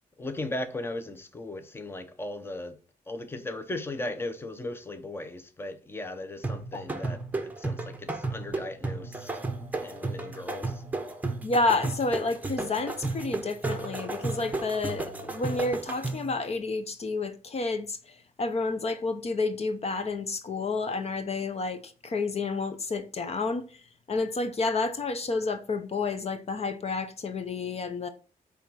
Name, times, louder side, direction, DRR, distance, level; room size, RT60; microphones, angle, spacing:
voice 1, 0.2-2.8 3.1-9.4 9.8-10.8, left 2 dB, 15° left, 0.9 m, -37 dB
sound 1, 6.4-16.4, right 2 dB, 10° right, 1.0 m, -33 dB
voice 2, 11.4-23.8 24.1-28.1, left 3 dB, 45° left, 0.8 m, -30 dB
8.9 x 3.5 x 6.2 m
wide cardioid pair, 155°, 15 cm